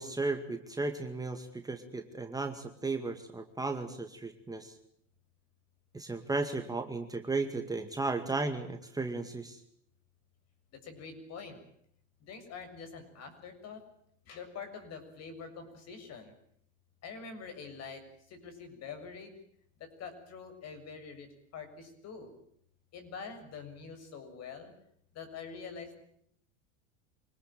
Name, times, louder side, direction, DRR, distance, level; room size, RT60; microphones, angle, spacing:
voice 1, 0.0-4.8 5.9-9.6, right 3 dB, 10° right, 5 dB, 2.1 m, -35 dB
voice 2, 10.7-11.6 12.2-13.8 14.2-16.3 17.0-19.4 19.8-22.3 22.9-24.7 25.1-26.0, left 5 dB, 45° left, 7 dB, 7.3 m, -45 dB
25.5 x 18.5 x 9.0 m, 0.67 s
supercardioid pair, 110°, 36 cm